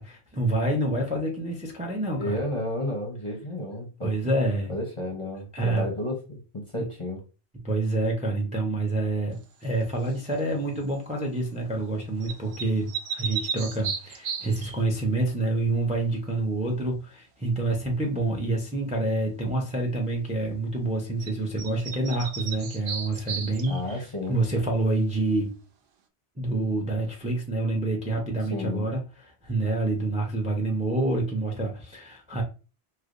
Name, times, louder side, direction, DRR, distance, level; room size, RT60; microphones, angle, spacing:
voice 1, 0.0-2.4 4.0-4.7 5.5-5.8 6.7-6.9 7.6-25.5 26.4-32.4, right 2 dB, 10° right, 1 dB, 0.5 m, -27 dB
voice 2, 2.2-4.1 4.7-6.2 6.5-7.2 23.7-24.4 28.5-28.9, left 1 dB, 30° left, 0 dB, 0.7 m, -32 dB
sound 1, 10.1-10.4 12.2-14.8 21.2-21.3 21.6-24.0, right 6 dB, 60° right, 0.7 m, -34 dB
3.2 x 3.0 x 2.5 m, 0.32 s
omnidirectional pair, 1.2 m